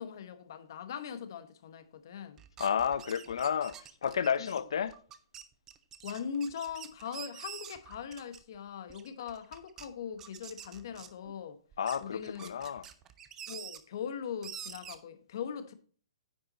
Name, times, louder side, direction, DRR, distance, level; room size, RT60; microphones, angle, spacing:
voice 1, 0.0-2.4 4.4-4.7 6.0-11.6 12.0-12.5 13.5-15.7, left 7 dB, 45° left, 1.0 m, -40 dB
sound 1, 2.4-8.5 8.9-9.9 10.2-11.3 11.7-13.8 14.4-15.0, right 9 dB, 15° right, 0.4 m, -47 dB
voice 2, 2.6-3.7 4.0-4.9 11.8-12.8, left 7 dB, 70° left, 0.6 m, -31 dB
9.4 x 5.5 x 4.1 m
hypercardioid pair, 175°, 3 cm